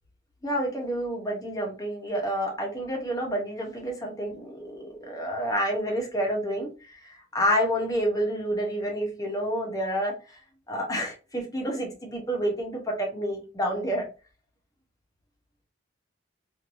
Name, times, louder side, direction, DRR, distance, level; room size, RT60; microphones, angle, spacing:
voice 1, 0.4-7.0 7.3-10.1 10.7-14.0, equal, 20° left, 0 dB, 0.9 m, -29 dB
3.1 x 2.6 x 2.6 m, 0.33 s
head